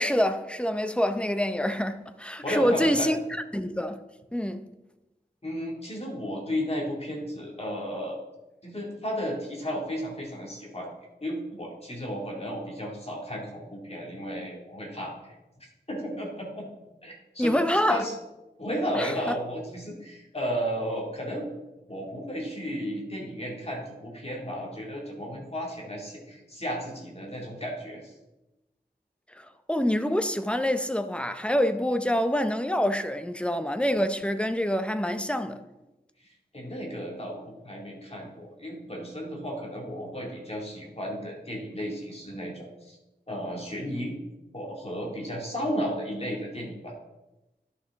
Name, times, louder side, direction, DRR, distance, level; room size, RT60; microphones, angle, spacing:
voice 1, 0.0-3.2 3.5-4.0 4.3-4.6 17.4-18.0 18.9-19.4 29.3-35.6, equal, 5° left, 0.6 m, -26 dB
voice 2, 2.4-3.1 5.4-8.2 8.6-10.9 11.2-15.3 15.6-16.7 17.0-17.5 17.9-18.1 18.6-21.5 21.9-28.1 36.5-43.0 43.3-44.2 44.5-46.9, equal, 35° left, 2.3 m, -33 dB
11.0 x 5.8 x 3.6 m
wide cardioid pair, 65°, 17 cm